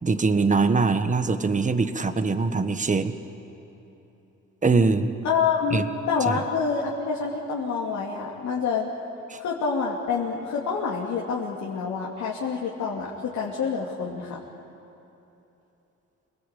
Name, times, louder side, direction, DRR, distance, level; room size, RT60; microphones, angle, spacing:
voice 1, 0.0-3.2 4.6-5.1 5.7-5.8 6.3-6.4 9.3-9.4, right 4 dB, 25° right, 9 dB, 1.5 m, -22 dB
voice 2, 5.2-8.9 9.4-14.4, left 5 dB, 70° left, -4 dB, 3.1 m, -27 dB
28.0 x 20.0 x 8.5 m, 3.0 s
cardioid pair, 90°, 30 cm